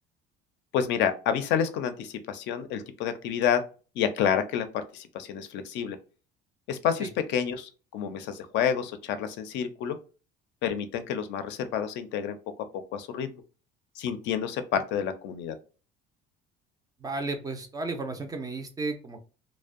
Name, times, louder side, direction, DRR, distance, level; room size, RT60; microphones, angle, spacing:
voice 1, 0.7-3.6 4.0-6.0 6.7-10.0 10.6-12.4 12.7-13.3 14.0-15.6, left 8 dB, 65° left, 10 dB, 0.4 m, -29 dB
voice 2, 17.0-19.2, right 3 dB, 20° right, 6 dB, 0.3 m, -33 dB
2.5 x 2.1 x 2.4 m, 0.35 s
cardioid pair, 150°, 20 cm